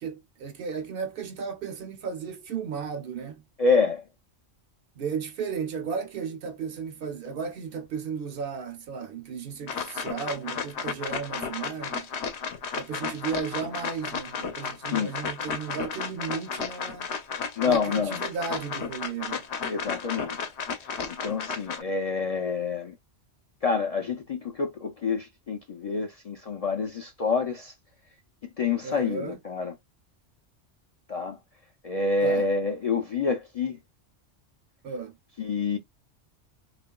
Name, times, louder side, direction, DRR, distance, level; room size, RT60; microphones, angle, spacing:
voice 1, 0.0-3.4 5.0-12.1 12.7-17.1 17.6-19.4 28.8-29.4 32.2-32.5 34.8-35.1, right 6 dB, 65° right, 0.7 m, -34 dB
voice 2, 3.6-4.0 14.9-15.1 17.6-18.2 19.7-20.5 21.1-22.9 23.6-27.7 28.6-29.7 31.1-31.4 31.8-33.8 35.4-35.8, left 4 dB, 55° left, 0.4 m, -27 dB
sound 1, 9.7-21.8, left 6 dB, 75° left, 0.9 m, -33 dB
2.8 x 2.4 x 2.2 m
omnidirectional pair, 1.1 m